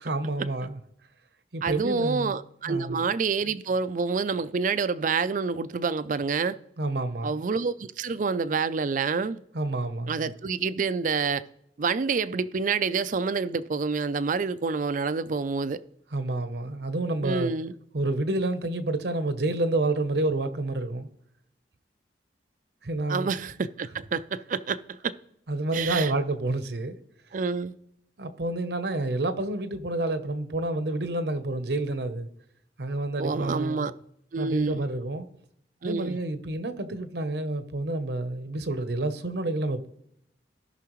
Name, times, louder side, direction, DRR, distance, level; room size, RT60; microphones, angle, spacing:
voice 1, 0.0-0.8 1.5-2.3 2.7-3.0 6.8-7.4 9.5-10.3 16.1-17.5 17.9-21.1 22.8-23.3 25.5-27.0 28.2-32.3 32.8-33.9 34.4-35.3 35.8-39.9, right 2 dB, 65° right, 0.8 m, -29 dB
voice 2, 1.6-6.6 7.2-9.4 10.1-11.4 11.8-15.8 17.2-17.7 23.1-25.1 25.7-26.1 27.3-27.7 33.2-33.9 34.3-34.9 35.8-36.2, right 5 dB, 45° right, 0.4 m, -28 dB
16.5 x 5.8 x 3.1 m
head